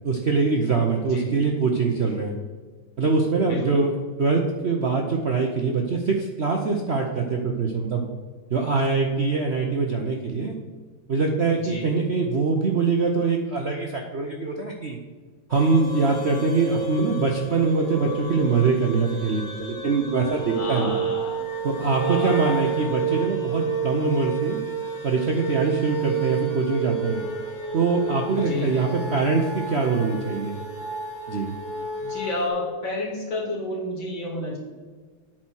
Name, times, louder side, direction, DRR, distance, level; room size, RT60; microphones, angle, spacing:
voice 1, 0.0-2.3 3.0-8.0 8.5-10.6 11.1-15.0 15.5-21.0 21.6-24.6 25.0-27.2 27.7-30.6 31.3-31.5, right 4 dB, 55° right, 1 dB, 0.7 m, -23 dB
voice 2, 3.4-3.8 11.6-11.8 20.6-21.4 22.0-22.7 28.4-28.8 32.0-34.6, left 2 dB, 75° left, -2 dB, 3.2 m, -31 dB
sound 1, 15.5-32.5, right 4 dB, 40° left, 1.9 m, -31 dB
8.8 x 4.3 x 6.2 m, 1.5 s
omnidirectional pair, 2.1 m